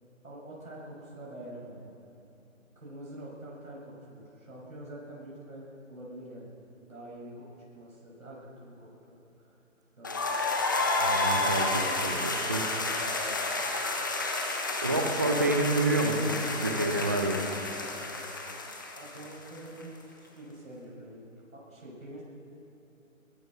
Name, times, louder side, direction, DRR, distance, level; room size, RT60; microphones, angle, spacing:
voice 1, 0.2-2.0 2.7-6.5 6.9-7.5 7.7-9.5 10.0-10.4 18.9-21.2 21.5-22.2, right 1 dB, 80° right, -5 dB, 6.7 m, -46 dB
sound 1, 10.0-19.8, left 2 dB, 15° left, 0.9 m, -31 dB
voice 2, 11.0-12.6 14.8-17.4, right 2 dB, 15° right, 3 dB, 0.8 m, -28 dB
23.0 x 19.5 x 6.4 m, 3.0 s
figure-of-eight pair, 165°, 41 cm